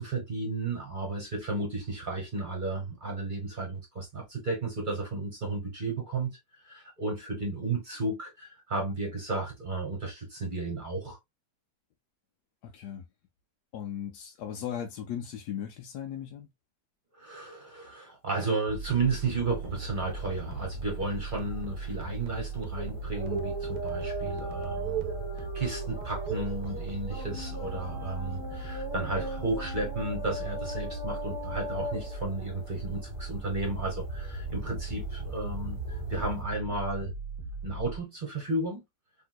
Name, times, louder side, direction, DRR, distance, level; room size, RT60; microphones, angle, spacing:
voice 1, 0.0-11.2 17.1-35.8 36.1-37.1 37.6-38.8, right 3 dB, 35° right, 1.0 m, -33 dB
voice 2, 12.6-13.0 13.7-16.5, left 9 dB, 75° left, 1.1 m, -37 dB
sound 1, 18.7-38.0, right 3 dB, 75° right, 1.2 m, -39 dB
sound 2, 19.4-36.4, right 2 dB, 15° left, 1.5 m, -39 dB
3.6 x 2.7 x 2.2 m
omnidirectional pair, 1.9 m